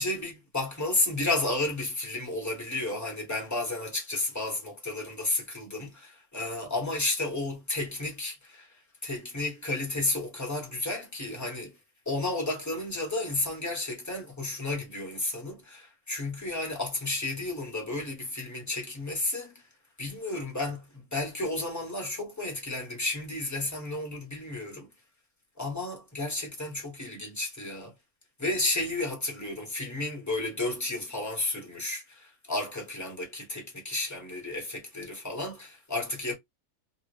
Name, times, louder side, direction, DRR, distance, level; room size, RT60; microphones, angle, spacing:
voice 1, 0.0-8.7 9.0-11.7 12.1-19.5 20.0-24.9 25.6-27.9 28.4-36.3, left 2 dB, 15° left, 0.8 m, -32 dB
3.4 x 2.0 x 2.9 m
omnidirectional pair, 1.7 m